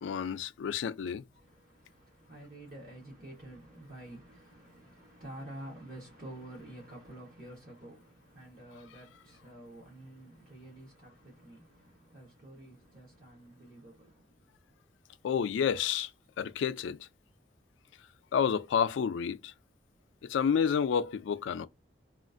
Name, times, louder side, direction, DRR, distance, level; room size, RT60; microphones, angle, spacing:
voice 1, 0.0-1.2 15.2-16.1 16.4-17.1 18.3-19.5 20.2-21.7, left 7 dB, 90° left, 0.3 m, -30 dB
voice 2, 1.3-14.3, right 1 dB, 50° right, 1.2 m, -49 dB
3.0 x 2.4 x 2.5 m
head